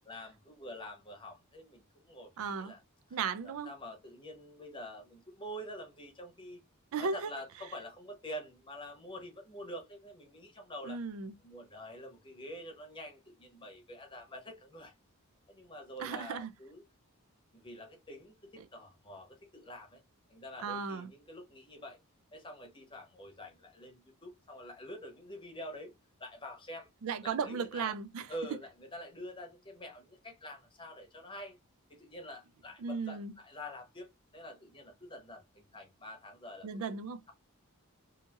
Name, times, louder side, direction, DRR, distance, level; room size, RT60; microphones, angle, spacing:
voice 1, 0.1-2.8 3.1-3.2 3.4-6.6 7.0-11.0 11.4-14.9 15.5-16.8 17.5-20.0 20.3-22.0 22.3-25.9 26.2-26.9 27.2-27.9 28.3-31.6 31.9-36.7, equal, 20° left, 0.8 m, -47 dB
voice 2, 2.4-2.7 3.1-3.7 6.9-7.3 10.9-11.3 16.0-16.5 20.6-21.1 27.0-28.3 32.8-33.3 36.6-37.2, right 5 dB, 65° right, 0.3 m, -35 dB
2.8 x 2.6 x 2.4 m
head